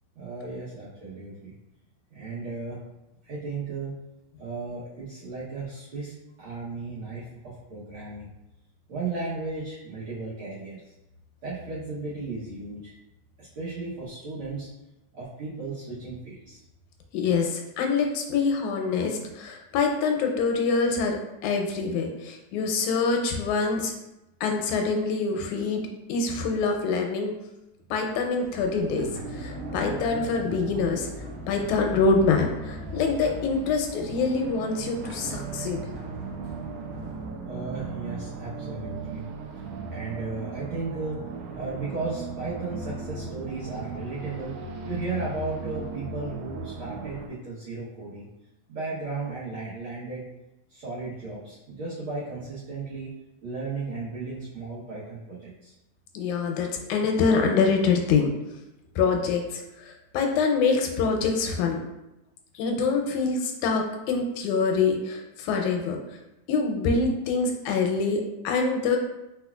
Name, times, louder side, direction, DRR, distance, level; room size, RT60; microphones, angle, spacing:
voice 1, 0.1-1.5 2.1-2.8 3.2-4.0 4.4-8.3 8.9-10.8 11.4-12.9 13.4-14.7 15.1-16.6 37.4-39.2 39.9-44.6 44.8-48.3 48.7-50.2 50.7-53.1 53.4-55.7, right 3 dB, 65° right, -8 dB, 1.4 m, -35 dB
voice 2, 17.1-23.9 24.4-25.8 26.1-27.3 27.9-31.1 31.5-35.8 56.1-58.3 59.0-61.8 62.6-66.0 66.5-69.0, left 4 dB, 85° left, 2 dB, 2.0 m, -25 dB
Sliding door, 28.1-37.3, right 1 dB, 35° right, 1.0 m, -40 dB
sound 1, 31.1-47.3, right 4 dB, 80° right, 1.5 m, -38 dB
4.7 x 4.2 x 2.3 m, 0.93 s
omnidirectional pair, 3.5 m